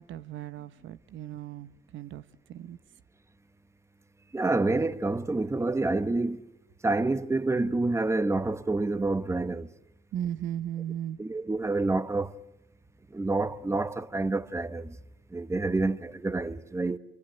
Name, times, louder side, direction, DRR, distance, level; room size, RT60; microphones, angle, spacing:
voice 1, 0.0-2.8 10.1-11.2, right 10 dB, 75° right, 0.9 m, -36 dB
voice 2, 4.3-6.4 6.8-9.7 11.2-12.3 13.1-15.0 15.3-17.0, right 2 dB, 15° right, 1.1 m, -28 dB
26.0 x 24.0 x 9.2 m
cardioid pair, 90°, 20 cm